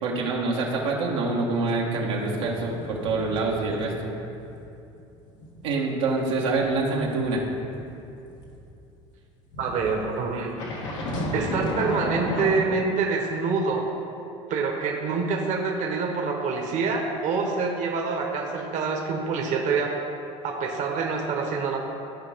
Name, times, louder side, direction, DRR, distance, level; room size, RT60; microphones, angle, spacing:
voice 1, 0.0-4.1 5.6-7.4, right 3 dB, 85° right, -3 dB, 1.4 m, -26 dB
sound 1, 2.1-4.0 4.3-4.6 5.0-8.6 9.5-12.6, left 1 dB, 90° left, 1.5 m, -34 dB
voice 2, 9.6-10.5 11.3-13.9 14.5-20.0 20.4-21.8, right 4 dB, 55° right, 1 dB, 1.2 m, -26 dB
14.0 x 4.9 x 3.6 m, 2.8 s
supercardioid pair, 85°, 15 cm